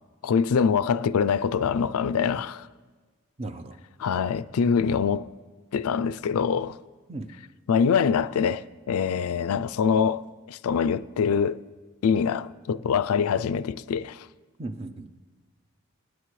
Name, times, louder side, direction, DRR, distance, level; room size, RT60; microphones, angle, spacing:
voice 1, 0.2-2.7 4.0-5.3 5.7-6.8 7.7-10.2 10.5-11.6 12.0-14.3, left 6 dB, 80° left, 0.4 m, -24 dB
voice 2, 3.4-3.8 7.1-7.3 14.6-15.1, right 2 dB, 30° right, 0.6 m, -36 dB
24.0 x 9.3 x 3.2 m
head